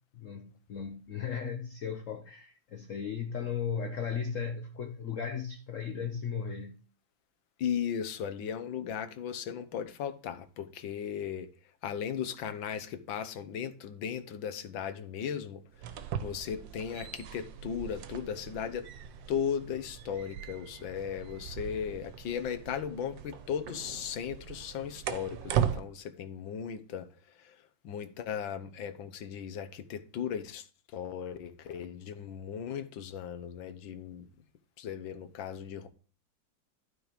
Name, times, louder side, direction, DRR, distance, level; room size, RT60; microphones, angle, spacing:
voice 1, 0.1-6.8, left 6 dB, 55° left, 0.9 m, -36 dB
voice 2, 7.6-11.5 11.8-15.6 16.2-18.9 19.3-27.1 27.4-27.6 27.8-30.7 30.9-34.3 34.8-35.9, left 8 dB, 75° left, 1.6 m, -36 dB
sound 1, 15.7-25.8, right 9 dB, 75° right, 1.5 m, -38 dB
12.0 x 4.7 x 5.1 m
omnidirectional pair, 2.1 m